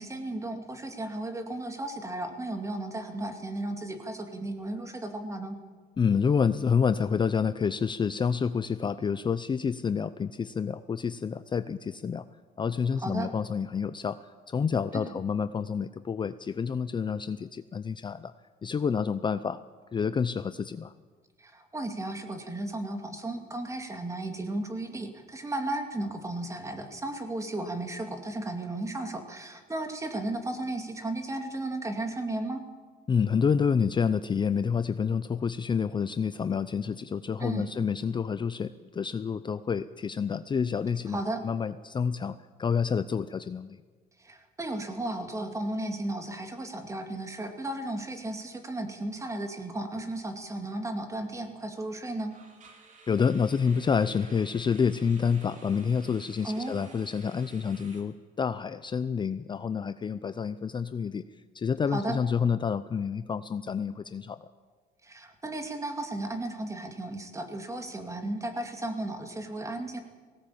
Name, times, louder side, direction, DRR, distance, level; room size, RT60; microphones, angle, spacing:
voice 1, 0.0-5.6 13.0-13.3 14.9-15.1 21.4-32.6 37.4-37.7 41.1-41.4 44.2-52.3 56.4-56.8 61.9-62.2 65.0-70.0, right 2 dB, 20° right, 6 dB, 2.5 m, -34 dB
voice 2, 6.0-12.3 12.6-18.3 18.6-19.6 19.9-20.9 33.1-43.8 53.1-61.3 61.5-64.5, left 6 dB, 25° left, 13 dB, 0.6 m, -28 dB
sound 1, 52.3-58.0, right 4 dB, 45° right, 3.6 m, -54 dB
18.5 x 17.5 x 8.7 m, 1.5 s
cardioid pair, 110°, 17 cm